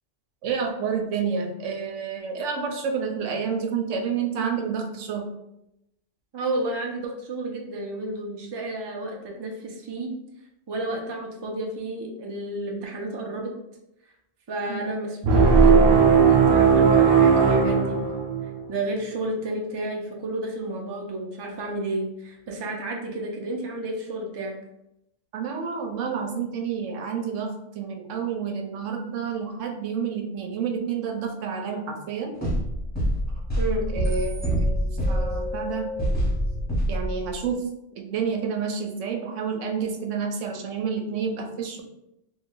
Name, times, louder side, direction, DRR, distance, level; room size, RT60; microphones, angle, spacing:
voice 1, 0.4-5.3 14.7-14.8 25.3-32.3 33.9-35.9 36.9-37.7 38.0-41.8, right 6 dB, 90° right, 4 dB, 0.9 m, -29 dB
voice 2, 6.3-10.1 10.7-13.5 14.5-15.2 15.4-18.0 18.7-24.6 33.6-33.9, right 1 dB, 40° right, 0 dB, 0.3 m, -31 dB
sound 1, 15.2-18.6, right 5 dB, 60° right, 0.7 m, -17 dB
sound 2, 32.4-37.3, equal, 10° left, 0.9 m, -26 dB
3.0 x 2.2 x 3.7 m, 0.84 s
omnidirectional pair, 1.2 m